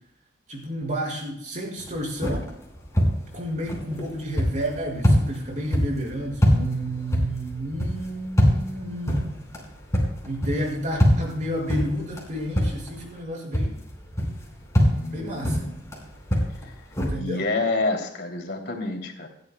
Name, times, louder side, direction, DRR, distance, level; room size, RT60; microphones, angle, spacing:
voice 1, 0.5-2.5 3.3-9.3 10.2-13.8 15.1-15.7 17.1-17.5, equal, 45° right, -1 dB, 5.2 m, -31 dB
sound 1, 1.8-13.2 13.5-17.1, equal, 15° left, 4.8 m, -25 dB
voice 2, 14.8-15.7 17.1-19.3, left 3 dB, 60° left, 3 dB, 2.7 m, -28 dB
28.5 x 12.0 x 2.2 m, 0.71 s
head